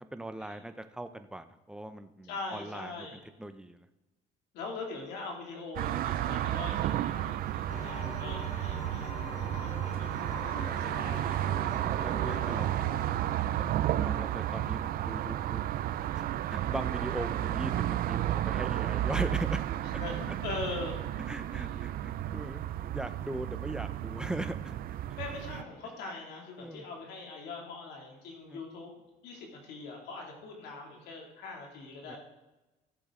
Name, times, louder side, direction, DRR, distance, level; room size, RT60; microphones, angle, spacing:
voice 1, 0.1-3.1 3.4-3.9 9.3-9.5 12.0-13.0 13.9-20.0 21.3-22.6 22.9-24.7 26.6-26.8 28.5-28.6 32.0-32.2, right 1 dB, 5° right, 9 dB, 0.7 m, -40 dB
voice 2, 2.3-3.2 4.5-10.1 10.5-11.7 20.0-21.0 21.5-21.7 25.2-28.9 29.2-32.2, left 3 dB, 80° left, 0 dB, 2.6 m, -42 dB
sound 1, 5.8-25.6, right 12 dB, 60° right, 0.5 m, -32 dB
sound 2, 7.7-13.5, left 3 dB, 40° left, 1.5 m, -44 dB
14.5 x 7.8 x 3.8 m, 1.1 s
cardioid pair, 110°, 17 cm